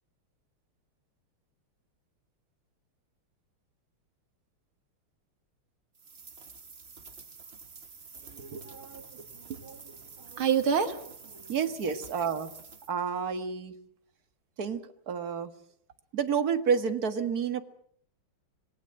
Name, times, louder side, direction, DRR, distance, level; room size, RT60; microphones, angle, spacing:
sound 1, 5.9-12.9, right 4 dB, 30° right, 1.6 m, -49 dB
voice 1, 8.3-11.5, right 7 dB, 80° right, 8 dB, 2.8 m, -32 dB
voice 2, 11.5-12.5 12.9-13.7 14.6-15.5 16.1-17.6, right 6 dB, 45° right, 8 dB, 2.1 m, -29 dB
26.5 x 19.5 x 7.7 m, 0.64 s
omnidirectional pair, 2.3 m